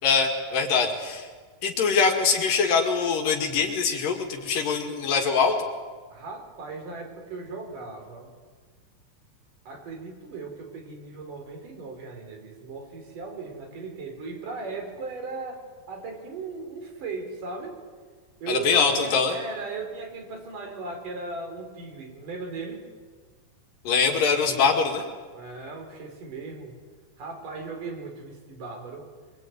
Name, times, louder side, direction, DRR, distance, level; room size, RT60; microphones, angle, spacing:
voice 1, 0.0-1.3 1.6-5.7 18.5-19.4 23.9-25.0, left 5 dB, 85° left, 2 dB, 3.8 m, -23 dB
voice 2, 6.1-8.3 9.7-17.7 18.4-22.9 25.3-26.8 27.2-29.1, right 3 dB, 75° right, 3 dB, 5.8 m, -37 dB
24.0 x 23.5 x 9.4 m, 1.5 s
omnidirectional pair, 3.8 m